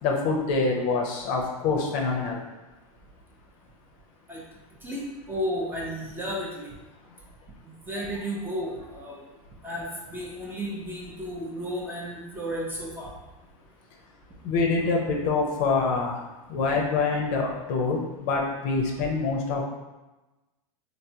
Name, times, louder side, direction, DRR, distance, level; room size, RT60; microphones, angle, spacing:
voice 1, 0.0-2.4 14.4-16.2 16.5-19.6, left 4 dB, 45° left, 0 dB, 0.6 m, -25 dB
voice 2, 4.8-6.7 7.6-9.2 9.6-13.1, equal, 10° right, -3 dB, 0.6 m, -33 dB
3.3 x 2.1 x 2.7 m, 1.1 s
hypercardioid pair, 115°, 19 cm